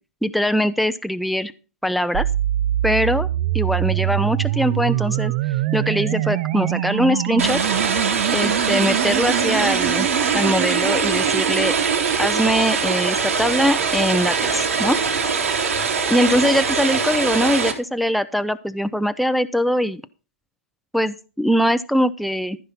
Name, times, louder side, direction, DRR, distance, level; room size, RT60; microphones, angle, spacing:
voice 1, 0.2-1.5 1.8-2.3 2.8-3.3 3.5-5.3 5.7-7.6 8.3-10.1 10.3-11.8 12.2-15.0 16.1-20.0 20.9-22.6, equal, ahead, 10 dB, 0.5 m, -21 dB
sound 1, 2.1-12.2, right 14 dB, 50° right, 0.5 m, -24 dB
sound 2, 7.4-17.7, right 5 dB, 80° right, 3.5 m, -22 dB
14.5 x 5.5 x 5.9 m, 0.34 s
hypercardioid pair, 130°, 8 cm